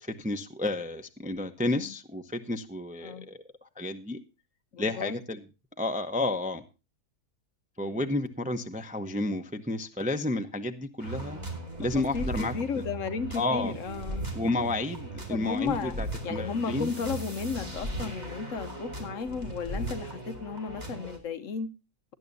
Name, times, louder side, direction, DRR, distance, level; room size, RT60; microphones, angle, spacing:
voice 1, 0.0-3.4 3.8-4.2 4.8-5.4 5.8-6.6 7.8-11.4 11.8-12.8 13.3-13.7 14.3-16.9, left 2 dB, 10° right, 0.5 m, -31 dB
voice 2, 4.7-5.2 7.8-8.2 11.9-14.3 15.3-16.0 16.2-21.7, left 5 dB, 60° left, 1.0 m, -34 dB
sound 1, 11.0-21.2, right 1 dB, 25° right, 2.7 m, -37 dB
17.5 x 11.0 x 2.7 m
omnidirectional pair, 1.7 m